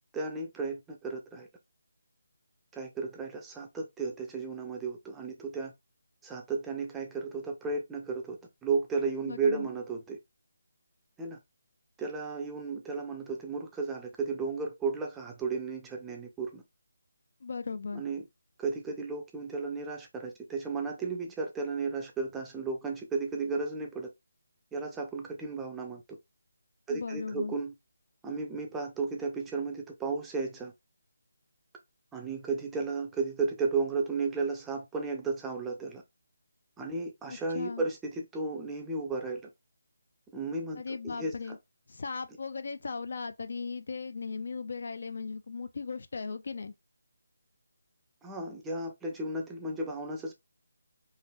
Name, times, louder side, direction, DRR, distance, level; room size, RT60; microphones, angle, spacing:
voice 1, 0.1-1.5 2.7-5.7 6.2-10.2 11.2-11.4 12.0-16.6 18.0-18.2 18.6-24.1 24.7-26.0 26.9-27.7 28.2-30.7 32.1-36.0 36.8-39.4 40.3-41.6 48.2-50.4, right 4 dB, 10° right, 0.5 m, -34 dB
voice 2, 9.2-9.7 17.4-18.0 26.9-27.6 37.3-37.9 40.8-41.6 41.9-46.7, left 4 dB, 55° left, 0.3 m, -37 dB
3.2 x 2.4 x 2.3 m
figure-of-eight pair, 150°, 0 cm